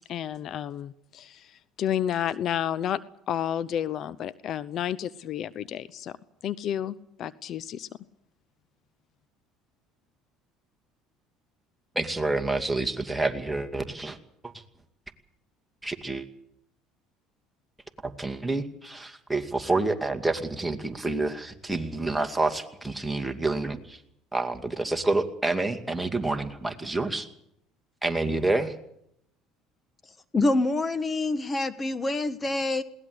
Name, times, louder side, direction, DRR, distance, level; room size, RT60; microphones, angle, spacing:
voice 1, 0.1-3.0 3.3-6.2 6.4-7.9, left 10 dB, 55° left, 19 dB, 0.7 m, -31 dB
voice 2, 12.0-14.2 14.4-14.5 15.8-16.3 18.0-24.0 24.3-27.3 28.0-28.7, right 2 dB, 10° right, 6 dB, 2.3 m, -28 dB
voice 3, 30.3-32.8, left 2 dB, 25° left, 13 dB, 1.4 m, -26 dB
21.0 x 18.5 x 8.1 m, 0.76 s
supercardioid pair, 80°, 0 cm